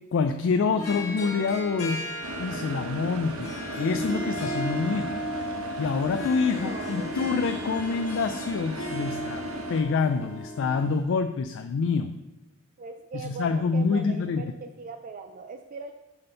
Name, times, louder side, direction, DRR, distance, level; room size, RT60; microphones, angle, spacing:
voice 1, 0.1-2.1 2.4-9.4 9.7-12.2 13.1-14.5, left 4 dB, 60° left, 8 dB, 0.3 m, -27 dB
Harp, 0.7-11.0, equal, 90° left, 2.5 m, -35 dB
sound 1, 2.2-9.8, right 1 dB, 85° right, 1.0 m, -37 dB
voice 2, 6.5-7.3 12.8-15.9, right 4 dB, 40° right, 6 dB, 0.4 m, -40 dB
6.6 x 4.3 x 5.5 m, 1.0 s
head